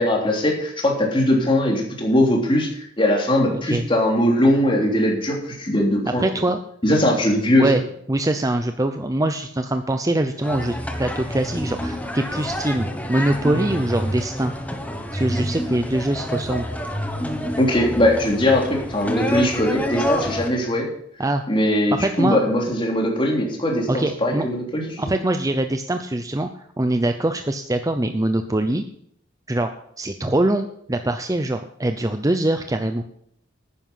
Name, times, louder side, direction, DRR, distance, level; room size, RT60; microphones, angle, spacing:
voice 1, 0.0-6.5 6.8-7.7 17.6-20.9 21.5-25.1, left 1 dB, 25° left, 0 dB, 3.3 m, -20 dB
voice 2, 3.5-3.9 6.2-6.6 7.6-7.8 8.1-14.5 15.1-16.7 21.2-21.4 22.0-22.4 23.9-24.5 25.0-26.5 26.8-28.8 29.5-29.7 30.0-33.0, right 1 dB, 15° right, 7 dB, 0.6 m, -23 dB
sound 1, 10.4-20.5, equal, 10° left, 1.3 m, -28 dB
11.0 x 9.9 x 5.6 m, 0.68 s
head